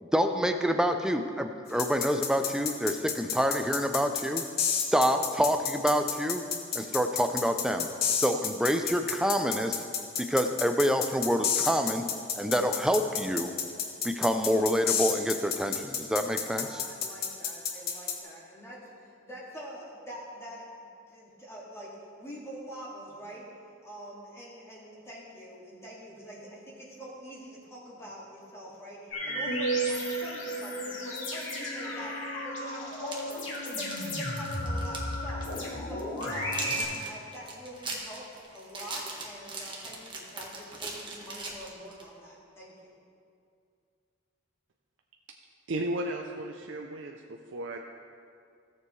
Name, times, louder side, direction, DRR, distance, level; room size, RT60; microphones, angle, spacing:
voice 1, 0.0-4.4 4.9-6.4 6.7-9.8 10.2-13.6 14.0-16.8, equal, 5° right, 6 dB, 0.5 m, -27 dB
sound 1, 1.8-18.2, left 7 dB, 55° left, 1.0 m, -30 dB
voice 2, 16.3-20.7 21.1-23.5 23.8-35.5 35.8-38.3 38.5-42.8, equal, 15° left, -6 dB, 2.1 m, -45 dB
sound 2, 29.1-36.8, equal, 85° left, 2.3 m, -33 dB
sound 3, 32.9-35.1 35.4-35.6 36.0-42.1, right 3 dB, 25° right, 1.4 m, -39 dB
voice 3, 45.7-47.8, right 1 dB, 75° right, 2 dB, 0.6 m, -34 dB
17.0 x 7.0 x 3.2 m, 2.3 s
head